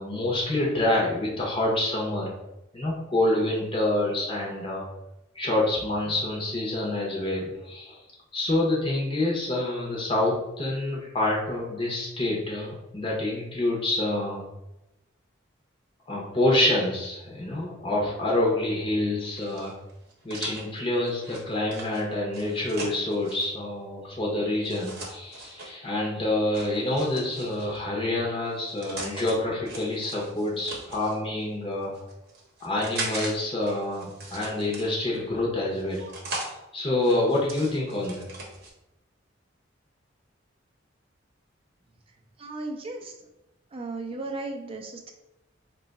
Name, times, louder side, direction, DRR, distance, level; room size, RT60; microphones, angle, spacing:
voice 1, 0.0-2.3 2.7-4.9 5.3-8.0 8.3-14.4 16.1-19.7 20.2-31.9 32.6-38.2, left 1 dB, 25° left, -3 dB, 0.6 m, -27 dB
sound 1, 19.4-23.5 24.6-25.7 26.5-27.8 28.5-29.3 29.7-31.2 31.8-33.3 33.6-35.2 35.7-36.5 37.0-38.7, right 2 dB, 50° right, 0.8 m, -39 dB
voice 2, 42.4-43.2 43.7-45.1, right 2 dB, 30° right, 3 dB, 0.4 m, -35 dB
2.8 x 2.2 x 4.0 m, 0.92 s
head